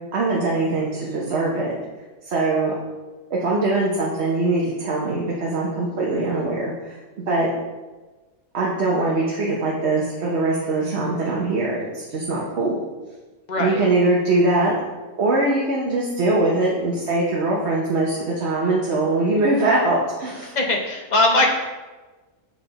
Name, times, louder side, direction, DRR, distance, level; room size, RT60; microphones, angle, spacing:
voice 1, 0.1-1.7 2.2-2.7 3.3-7.0 7.3-7.5 8.5-12.8 13.6-14.7 15.2-20.5, right 2 dB, 55° right, -4 dB, 1.1 m, -22 dB
voice 2, 13.5-13.8 20.5-21.5, left 2 dB, 40° left, 2 dB, 0.8 m, -20 dB
7.6 x 3.7 x 3.9 m, 1.2 s
omnidirectional pair, 1.5 m